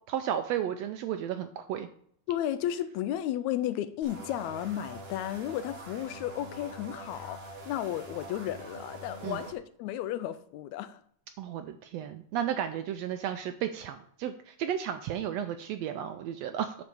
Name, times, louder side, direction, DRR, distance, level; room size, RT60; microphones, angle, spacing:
voice 1, 0.1-1.9 9.2-9.4 11.4-16.8, right 10 dB, 80° right, 1.5 m, -33 dB
voice 2, 2.3-11.0, left 12 dB, 80° left, 1.8 m, -33 dB
sound 1, 4.0-9.5, right 2 dB, 60° right, 0.6 m, -45 dB
9.7 x 4.1 x 6.9 m
omnidirectional pair, 3.4 m